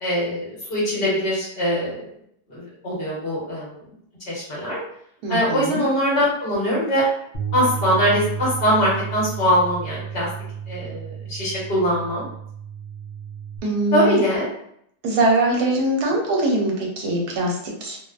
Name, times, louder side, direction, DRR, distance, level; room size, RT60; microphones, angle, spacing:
voice 1, 0.0-2.1 2.5-3.8 4.3-4.8 5.3-7.0 7.5-10.3 10.7-12.3 13.9-14.5, equal, 45° left, -7 dB, 1.0 m, -22 dB
voice 2, 5.2-5.9 13.6-14.2 15.0-18.0, right 2 dB, 75° right, -1 dB, 1.1 m, -22 dB
Bass guitar, 7.3-13.6, right 7 dB, 70° left, 0.7 m, -32 dB
2.8 x 2.0 x 2.3 m, 0.71 s
omnidirectional pair, 1.8 m